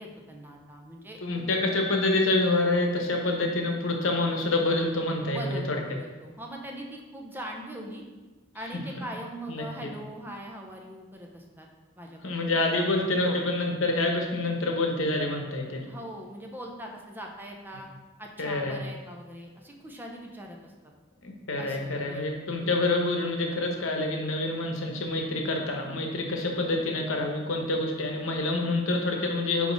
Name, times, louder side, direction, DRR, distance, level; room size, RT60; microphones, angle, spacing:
voice 1, 0.0-1.6 5.3-8.0 8.5-11.7 12.0-12.3 12.7-12.9 13.2-13.4 15.9-17.9 18.2-20.7 21.6-22.3, equal, 10° right, 1 dB, 0.6 m, -41 dB
voice 2, 1.2-5.8 8.7-8.8 9.5-9.6 12.2-15.9 18.4-18.8 21.2-29.7, left 2 dB, 90° left, 2 dB, 1.0 m, -27 dB
5.1 x 4.9 x 3.9 m, 1.2 s
head